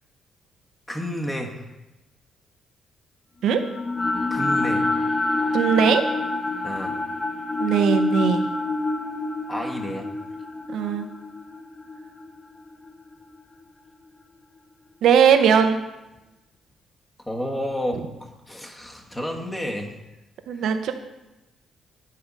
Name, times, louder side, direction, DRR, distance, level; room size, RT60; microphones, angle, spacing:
voice 1, 0.9-1.7 4.3-4.9 6.6-6.9 9.5-10.1 17.2-20.0 20.5-20.7, equal, 15° left, 1 dB, 1.4 m, -31 dB
sound 1, 3.4-13.6, left 2 dB, 30° left, 0.6 m, -27 dB
voice 2, 5.5-6.0 7.6-8.5 10.7-11.1 15.0-15.8 20.5-20.9, right 7 dB, 75° right, 7 dB, 0.7 m, -19 dB
9.8 x 3.8 x 5.4 m, 1.0 s
cardioid pair, 90°, 0 cm